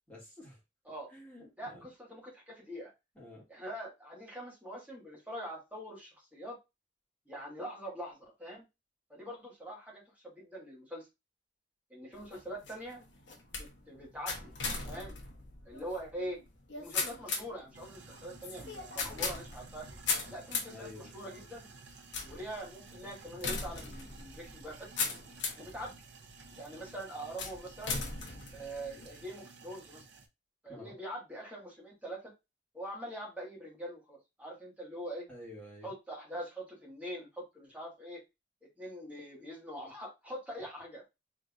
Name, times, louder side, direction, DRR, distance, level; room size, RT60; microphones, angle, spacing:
voice 1, 0.1-0.6 1.1-1.8 3.2-3.4 20.7-21.1 30.7-30.9 35.3-35.9, left 1 dB, 5° left, -6 dB, 2.4 m, -49 dB
voice 2, 1.6-2.9 3.5-6.6 7.2-8.6 9.1-11.1 11.9-13.0 13.6-14.5 14.8-15.1 15.6-16.4 16.8-19.9 20.3-21.7 22.2-24.9 25.6-26.0 26.6-28.0 28.5-30.0 30.6-32.3 32.7-35.3 35.8-38.2 38.8-41.1, equal, 10° right, -4 dB, 1.9 m, -43 dB
sound 1, 12.1-25.7 26.3-26.8 27.4-29.2, left 4 dB, 75° left, 1.1 m, -39 dB
sound 2, 17.7-30.3, right 3 dB, 70° right, 0.8 m, -53 dB
4.0 x 3.6 x 2.5 m, 0.23 s
head